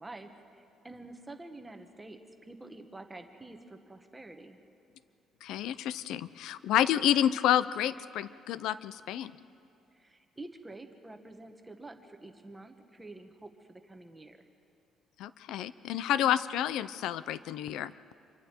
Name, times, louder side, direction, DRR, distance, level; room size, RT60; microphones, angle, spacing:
voice 1, 0.0-4.6 9.9-14.4, right 2 dB, 10° right, 5 dB, 1.2 m, -48 dB
voice 2, 5.4-9.3 15.2-17.9, left 11 dB, 75° left, 16 dB, 0.6 m, -29 dB
27.0 x 24.0 x 4.5 m, 2.8 s
cardioid pair, 175°, 0 cm